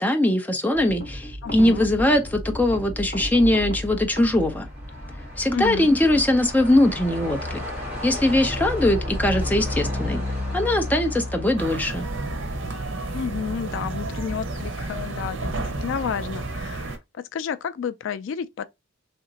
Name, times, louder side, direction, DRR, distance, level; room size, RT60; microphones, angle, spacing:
voice 1, 0.0-4.7 5.4-7.6 8.0-10.2 10.5-12.1, left 1 dB, 10° left, 0.5 m, -21 dB
sound 1, 0.7-12.0, equal, 35° left, 2.1 m, -38 dB
voice 2, 1.4-1.9 5.5-5.9 13.1-18.6, left 7 dB, 70° left, 0.3 m, -31 dB
Truck, 3.7-13.0, left 1 dB, 10° right, 1.9 m, -32 dB
sound 2, 11.6-17.0, right 2 dB, 75° right, 0.9 m, -31 dB
3.4 x 2.9 x 2.7 m
head